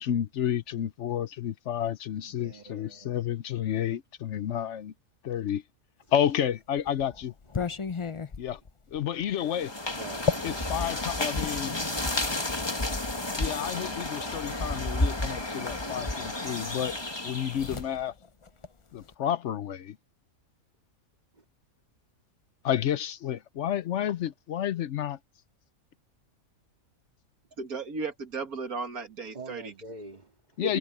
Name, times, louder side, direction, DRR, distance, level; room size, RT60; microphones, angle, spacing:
voice 1, 0.0-4.9 5.2-5.6 6.1-7.3 8.4-8.6 8.9-9.7 10.4-11.8 13.4-17.0 17.2-18.1 18.9-20.0 22.6-25.2 30.6-30.8, left 10 dB, 60° left, 0.9 m, -30 dB
voice 2, 2.2-3.3 7.6-7.7 9.9-10.6 21.3-21.4 29.3-30.6, right 3 dB, 30° right, 2.2 m, -46 dB
sound 1, 6.3-11.6 12.5-13.8 15.1-15.2 15.5-16.6 16.9-19.1, left 5 dB, 40° left, 0.4 m, -36 dB
sound 2, 9.4-17.9, left 2 dB, 20° left, 1.6 m, -32 dB
voice 3, 27.6-29.7 30.6-30.8, right 4 dB, 80° right, 2.4 m, -35 dB
omnidirectional pair, 1.5 m